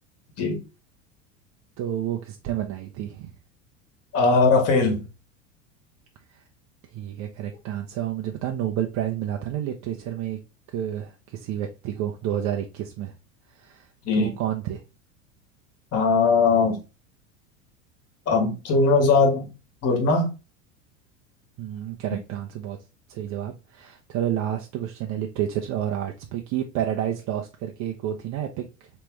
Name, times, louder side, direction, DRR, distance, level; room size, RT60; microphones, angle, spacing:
voice 1, 1.8-3.3 6.3-6.4 6.9-10.4 10.7-13.1 13.5-13.9 14.1-14.8 21.6-22.8 23.1-28.9, right 11 dB, 45° right, 0.7 m, -30 dB
voice 2, 4.1-5.0 14.0-14.3 15.9-16.8 18.3-19.5 19.8-20.3, left 4 dB, 40° left, 1.6 m, -20 dB
3.3 x 3.1 x 3.3 m
hypercardioid pair, 90°, 39 cm